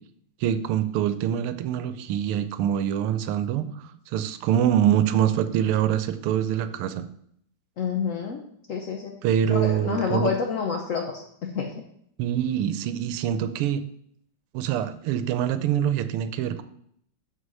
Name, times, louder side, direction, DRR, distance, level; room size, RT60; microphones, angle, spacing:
voice 1, 0.4-7.1 9.2-10.3 12.2-13.8 14.5-16.6, right 10 dB, 85° right, 11 dB, 1.6 m, -25 dB
voice 2, 7.8-8.4 8.7-9.2 9.5-11.7, left 6 dB, 70° left, 2 dB, 0.7 m, -28 dB
6.6 x 6.4 x 5.5 m, 0.68 s
omnidirectional pair, 2.4 m